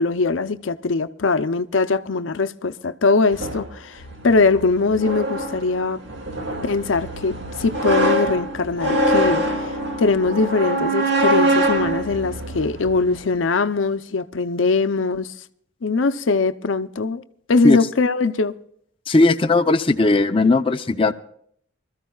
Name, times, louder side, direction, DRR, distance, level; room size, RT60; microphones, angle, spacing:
voice 1, 0.0-6.0 6.6-9.4 10.0-15.3 15.8-17.2 17.5-18.5, left 3 dB, 90° left, 0.7 m, -21 dB
sound 1, 3.3-13.3, right 1 dB, 65° right, 2.2 m, -24 dB
voice 2, 19.1-21.1, left 2 dB, 30° left, 0.7 m, -17 dB
25.5 x 13.5 x 2.3 m
head